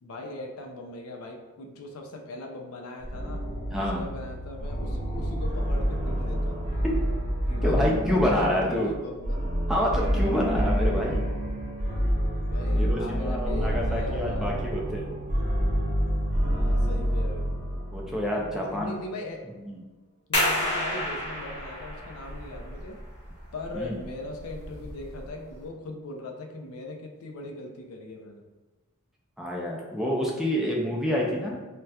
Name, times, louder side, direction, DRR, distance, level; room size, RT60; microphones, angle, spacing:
voice 1, 0.0-3.4 3.7-6.6 7.5-9.4 10.1-10.4 10.7-10.9 12.4-14.5 16.5-17.6 18.5-19.4 20.3-23.0 23.5-28.4 31.0-31.4, left 2 dB, 70° left, 2 dB, 0.4 m, -39 dB
sound 1, 3.0-18.7, equal, 35° right, 0.6 m, -28 dB
voice 2, 3.7-4.0 7.6-8.9 9.7-11.2 12.8-15.0 17.9-19.0 19.5-19.8 23.7-24.0 29.4-31.6, equal, ahead, -3 dB, 0.4 m, -27 dB
sound 2, 20.3-25.7, left 1 dB, 25° left, 1.2 m, -31 dB
4.0 x 2.2 x 2.3 m, 1.2 s
head